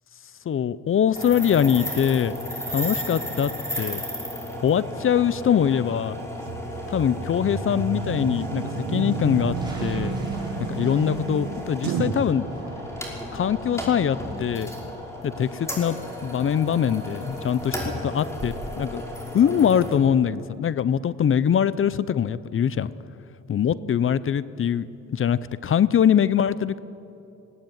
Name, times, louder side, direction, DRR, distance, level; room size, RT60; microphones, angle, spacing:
voice 1, 0.4-2.4 2.7-3.5 3.8-4.0 4.6-6.2 6.9-10.1 10.6-12.5 13.3-14.7 15.2-19.0 19.3-22.9 23.5-26.8, left 8 dB, 45° left, 17 dB, 0.7 m, -23 dB
sound 1, 1.1-20.0, equal, 10° left, 5.3 m, -34 dB
sound 2, 6.5-12.3, right 5 dB, 70° right, 2.1 m, -31 dB
sound 3, 9.2-11.8 12.3-13.4, right 1 dB, 15° right, 6.6 m, -42 dB
20.5 x 17.0 x 9.0 m, 2.8 s
cardioid pair, 90°, 30 cm